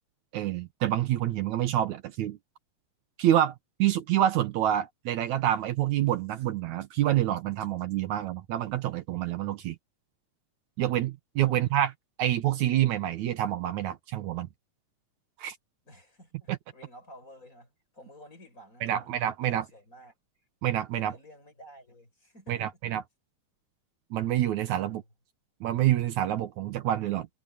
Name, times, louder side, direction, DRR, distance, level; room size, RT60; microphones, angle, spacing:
voice 1, 0.3-2.4 3.2-3.5 3.8-9.8 10.8-11.9 12.2-14.5 15.4-15.6 16.5-16.6 18.8-19.6 20.6-21.1 22.5-23.0 24.1-25.0 25.6-27.3, right 12 dB, 75° right, 2.3 m, -27 dB
voice 2, 11.4-11.7 15.8-20.1 20.9-22.8 24.8-25.1, equal, 25° left, 8.3 m, -52 dB
omnidirectional pair, 3.5 m